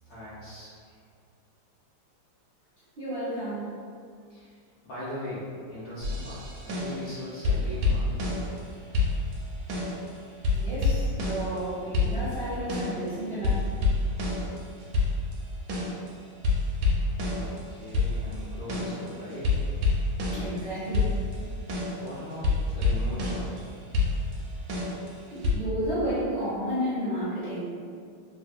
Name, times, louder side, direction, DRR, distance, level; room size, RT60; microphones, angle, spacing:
voice 1, 0.1-0.7 4.3-8.4 17.3-19.6 21.9-23.6, left 1 dB, 70° left, -11 dB, 0.9 m, -40 dB
voice 2, 3.0-3.8 10.5-13.7 20.3-21.2 25.3-27.6, right 1 dB, 60° right, -14 dB, 0.6 m, -32 dB
sound 1, 6.0-7.1 7.4-8.7 8.9-10.1 10.4-11.7 11.9-13.1 13.4-16.1 16.4-20.6 20.9-23.6 23.9-25.5, left 3 dB, 75° right, 1.1 m, -27 dB
3.3 x 2.0 x 2.6 m, 2.2 s
omnidirectional pair, 2.3 m